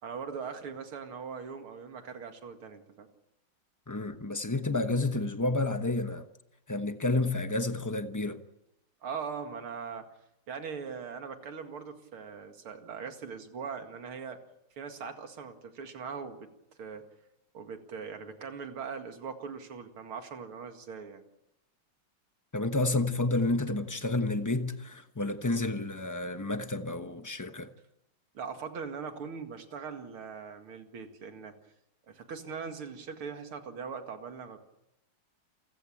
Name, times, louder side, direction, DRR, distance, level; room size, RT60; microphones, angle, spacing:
voice 1, 0.0-3.1 9.0-10.1 10.5-14.4 14.8-16.5 16.8-17.1 17.5-21.2 28.3-31.5 32.1-34.6, right 6 dB, 90° right, 3.0 m, -40 dB
voice 2, 3.9-6.2 6.7-8.4 22.5-27.7, left 2 dB, 15° left, 0.7 m, -30 dB
29.0 x 15.5 x 8.7 m
omnidirectional pair, 2.3 m